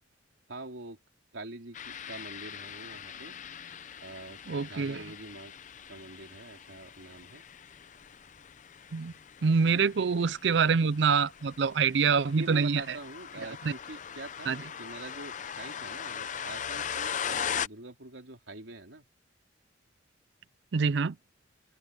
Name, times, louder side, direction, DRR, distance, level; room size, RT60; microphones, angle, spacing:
voice 1, 0.5-1.0 1.3-3.3 4.0-5.5 5.9-7.4 12.3-19.0, right 2 dB, 85° right, 3.2 m, -45 dB
sound 1, 1.7-17.7, left 8 dB, 40° left, 0.6 m, -40 dB
voice 2, 4.5-5.0 8.9-9.1 9.4-13.0 13.6-13.7 14.5-14.6 20.7-21.2, right 5 dB, 65° right, 0.5 m, -25 dB
open air
head